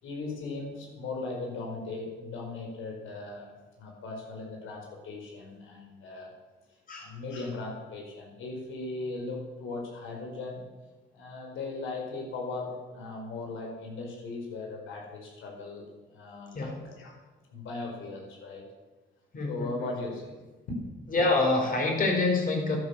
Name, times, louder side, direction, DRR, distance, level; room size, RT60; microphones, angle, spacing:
voice 1, 0.0-3.5 3.8-6.3 7.0-10.7 11.1-17.2 17.5-18.6 19.4-20.4 20.7-20.8, left 3 dB, 80° left, 1 dB, 4.9 m, -38 dB
voice 2, 19.3-19.7 21.1-22.8, left 3 dB, 45° left, 0 dB, 5.0 m, -26 dB
12.0 x 11.5 x 7.1 m, 1.2 s
cardioid pair, 90°, 20 cm